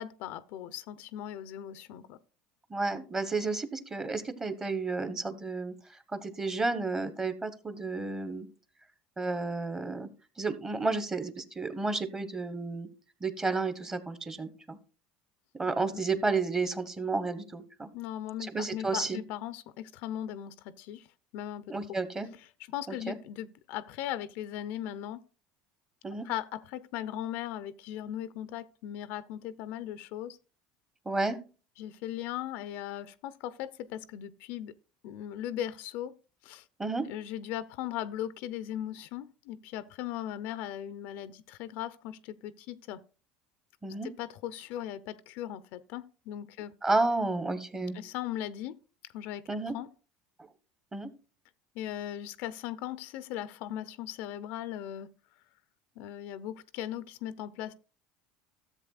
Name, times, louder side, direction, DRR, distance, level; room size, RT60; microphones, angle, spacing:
voice 1, 0.0-2.2 15.9-16.0 17.9-21.1 21.3-21.6 22.7-25.2 26.2-30.4 31.8-34.7 35.0-36.1 36.4-36.6 37.1-43.0 44.0-46.7 47.9-48.7 49.1-49.4 49.7-49.9 51.8-55.1 56.0-57.7, left 11 dB, 70° left, 0.5 m, -38 dB
voice 2, 2.7-5.7 6.1-8.5 9.2-10.1 10.4-12.9 13.2-14.8 15.5-17.9 18.4-19.2 21.7-22.3 22.9-23.2 26.0-26.3 31.0-31.4 36.8-37.0 43.8-44.1 46.8-48.0 49.5-49.7 50.9-51.1, right 3 dB, 20° right, 1.0 m, -31 dB
13.5 x 7.4 x 2.4 m
supercardioid pair, 100°, 3 cm